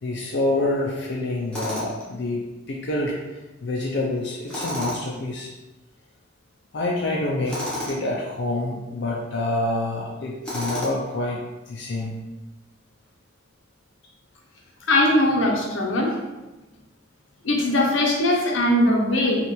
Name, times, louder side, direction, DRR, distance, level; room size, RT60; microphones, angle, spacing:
voice 1, 0.0-5.5 6.7-12.2, left 2 dB, 60° left, -3 dB, 0.5 m, -27 dB
Tools, 1.5-2.1 4.5-5.2 7.5-8.0 10.4-11.1, left 1 dB, 5° left, 0.9 m, -31 dB
voice 2, 14.9-16.2 17.4-19.5, left 1 dB, 85° left, 0 dB, 0.8 m, -20 dB
5.5 x 2.5 x 3.1 m, 1.1 s
head